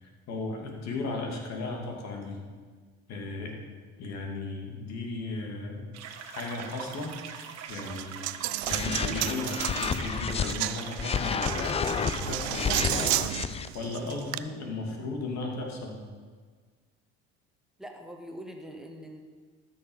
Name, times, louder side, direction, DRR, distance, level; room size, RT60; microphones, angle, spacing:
voice 1, 0.0-2.4 3.1-3.6 4.0-6.0 6.3-7.1 7.7-8.2 8.7-13.1 13.7-16.0, left 3 dB, 55° left, 1 dB, 2.6 m, -35 dB
sound 1, 5.9-13.3, right 7 dB, 55° right, 1.4 m, -42 dB
Coin (dropping), 7.7-14.4, right 16 dB, 85° right, 0.5 m, -33 dB
sound 2, 8.6-10.5 11.0-13.7, left 7 dB, 20° left, 0.4 m, -31 dB
voice 2, 17.8-19.2, equal, ahead, 2 dB, 1.7 m, -43 dB
13.0 x 6.5 x 5.5 m, 1.5 s
supercardioid pair, 85°, 32 cm